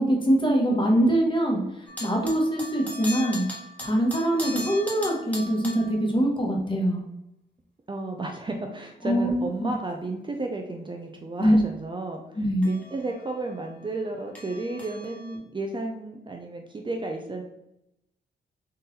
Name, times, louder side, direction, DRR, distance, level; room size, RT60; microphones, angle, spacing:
voice 1, 0.0-3.4 3.8-7.0 9.0-9.7 11.4-11.6 12.4-12.7, right 1 dB, 25° left, 0 dB, 1.2 m, -23 dB
sound 1, 1.9-6.0 12.6-15.4, left 1 dB, 10° left, 1.3 m, -39 dB
voice 2, 7.9-17.4, right 2 dB, 25° right, 3 dB, 0.5 m, -33 dB
3.9 x 2.6 x 4.0 m, 0.86 s
cardioid pair, 80°, 19 cm